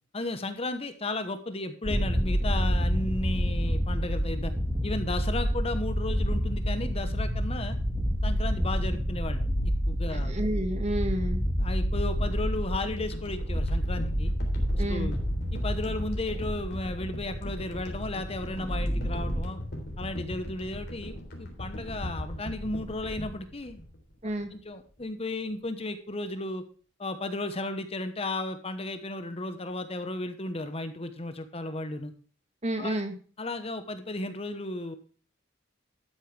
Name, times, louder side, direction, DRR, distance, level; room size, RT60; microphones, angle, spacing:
voice 1, 0.1-4.5 4.8-7.8 8.2-10.4 11.6-14.3 14.7-15.2 15.5-19.6 20.0-23.8 24.5-26.6 27.0-32.1 32.8-33.0 33.4-35.0, left 2 dB, 30° left, 9 dB, 1.1 m, -34 dB
sound 1, 1.8-19.4, equal, 5° right, 3.1 m, -29 dB
voice 2, 10.1-11.4 14.8-15.1 24.2-24.5 32.6-33.2, right 1 dB, 35° right, 7 dB, 1.7 m, -30 dB
sound 2, 12.2-24.6 24.9-25.0, equal, 55° left, 3.5 m, -40 dB
12.5 x 9.0 x 3.4 m, 0.41 s
head